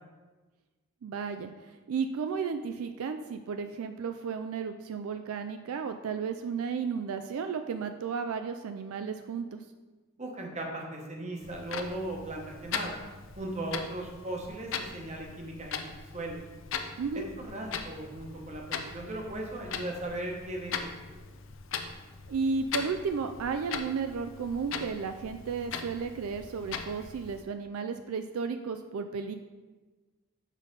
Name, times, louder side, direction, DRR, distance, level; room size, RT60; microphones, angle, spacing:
voice 1, 1.0-1.5 1.9-9.6 17.0-17.3 22.3-29.4, right 5 dB, 80° right, 8 dB, 0.3 m, -33 dB
voice 2, 10.2-13.0 13.4-16.4 17.1-20.9, right 1 dB, 30° right, 0 dB, 0.9 m, -37 dB
Clock, 11.4-27.4, left 6 dB, 60° left, 0.5 m, -40 dB
6.3 x 3.9 x 5.2 m, 1.3 s
head